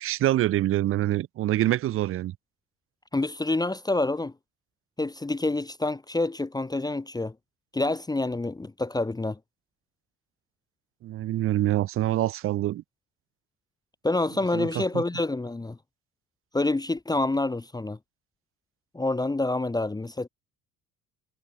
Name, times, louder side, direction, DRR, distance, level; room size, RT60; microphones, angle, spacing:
voice 1, 0.0-2.3 11.0-12.8 14.5-14.7 14.9-15.0, right 14 dB, 40° right, 0.4 m, -25 dB
voice 2, 3.1-4.3 5.0-7.3 7.7-9.4 14.0-15.8 16.5-18.0 18.9-20.3, left 2 dB, 10° left, 1.1 m, -27 dB
cardioid pair, 115°, 36 cm